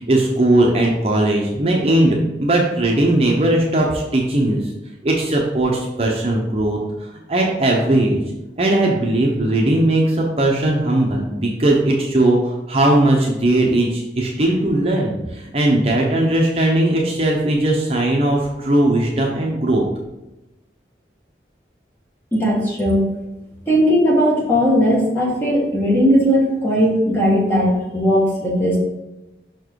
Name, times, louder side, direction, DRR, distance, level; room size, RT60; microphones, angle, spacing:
voice 1, 0.1-4.6 5.0-6.8 7.3-8.2 8.6-15.2 15.5-19.8, right 1 dB, 35° right, -1 dB, 0.8 m, -18 dB
voice 2, 22.3-23.0 23.7-28.8, equal, 10° left, -4 dB, 1.6 m, -17 dB
5.6 x 4.6 x 4.6 m, 1.0 s
head